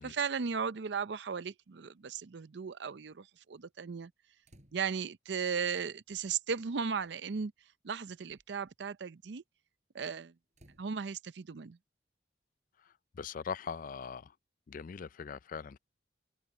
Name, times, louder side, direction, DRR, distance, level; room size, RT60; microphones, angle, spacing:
voice 1, 0.0-4.1 4.7-7.5 7.8-9.4 9.9-10.3 10.8-11.8, right 6 dB, 65° right, 0.5 m, -36 dB
sound 1, 4.4-5.1 6.4-6.5 7.4-7.6 8.1-8.7 10.5-10.9, right 1 dB, 40° right, 7.0 m, -63 dB
voice 2, 12.8-14.3 14.7-15.8, left 6 dB, 50° left, 0.4 m, -41 dB
open air
head